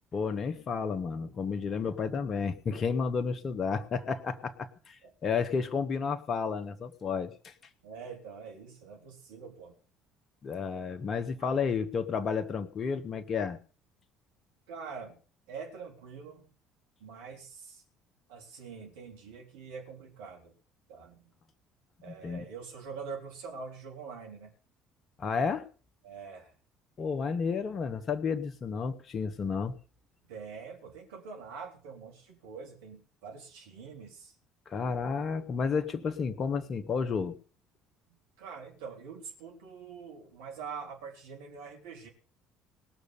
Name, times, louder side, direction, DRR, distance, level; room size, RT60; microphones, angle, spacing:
voice 1, 0.1-7.5 10.4-13.6 22.1-22.4 25.2-25.7 27.0-29.7 34.7-37.4, left 5 dB, 40° left, 8 dB, 1.3 m, -31 dB
voice 2, 7.8-9.8 11.4-11.6 14.7-15.2 15.5-16.5 17.0-17.8 18.3-20.6 20.9-21.3 22.0-24.5 26.0-26.5 30.3-34.3 38.1-42.1, right 5 dB, 65° right, 2 dB, 3.5 m, -45 dB
19.5 x 6.6 x 6.8 m, 0.39 s
figure-of-eight pair, 55°, 0 cm